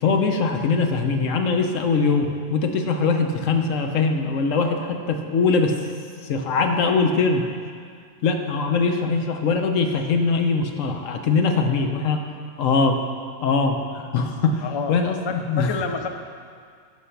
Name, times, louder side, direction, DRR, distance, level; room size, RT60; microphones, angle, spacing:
voice 1, 0.0-5.8 6.3-7.5 8.2-12.2 12.6-13.0 13.4-14.6 14.9-15.7, left 4 dB, 90° left, 5 dB, 1.2 m, -22 dB
voice 2, 14.6-15.0 15.3-16.1, left 5 dB, 35° left, 6 dB, 0.4 m, -28 dB
10.5 x 6.5 x 5.8 m, 2.1 s
omnidirectional pair, 1.3 m